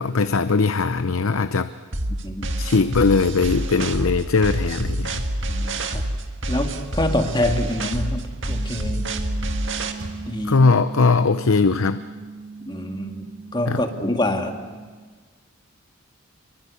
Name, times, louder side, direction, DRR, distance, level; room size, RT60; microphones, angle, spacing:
voice 1, 0.0-1.7 2.6-5.2 10.5-12.0 13.7-13.8, left 4 dB, 75° left, 12 dB, 0.7 m, -20 dB
sound 1, 1.9-9.9, right 1 dB, 60° right, 1.9 m, -27 dB
voice 2, 5.5-6.0 6.5-9.1 10.3-10.6 12.7-13.3 13.5-14.6, left 1 dB, 20° left, 5 dB, 2.1 m, -26 dB
sound 2, 8.5-14.9, right 4 dB, 30° right, 3.8 m, -38 dB
sound 3, 9.3-11.4, right 1 dB, 85° right, 3.9 m, -44 dB
27.0 x 24.0 x 8.4 m, 1.4 s
head